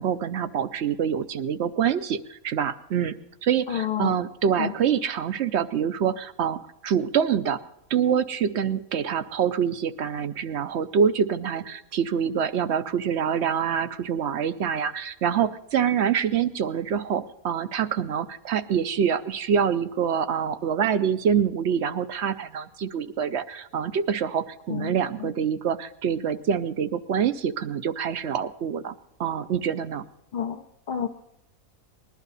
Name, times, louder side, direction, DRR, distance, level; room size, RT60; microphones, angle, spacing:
voice 1, 0.0-3.1 3.4-7.6 7.9-28.9 29.2-30.0, right 8 dB, 60° right, 12 dB, 0.8 m, -26 dB
voice 2, 3.7-4.2 4.6-4.7 24.7-24.9 25.2-25.3 30.3-31.1, left 9 dB, 45° left, 4 dB, 0.6 m, -29 dB
20.0 x 11.5 x 4.0 m, 0.86 s
omnidirectional pair, 1.5 m